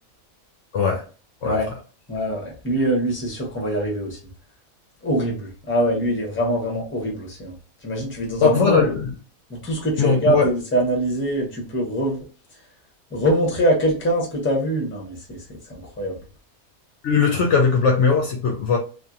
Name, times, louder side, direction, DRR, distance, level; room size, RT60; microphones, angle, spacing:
voice 1, 2.1-4.2 5.0-7.5 7.8-8.8 9.5-12.2 13.1-15.4 15.7-16.1, right 1 dB, 10° left, 0.7 m, -23 dB
voice 2, 8.4-9.1 10.0-10.5 17.0-18.8, left 5 dB, 65° left, 0.8 m, -19 dB
2.8 x 2.4 x 2.4 m
omnidirectional pair, 1.5 m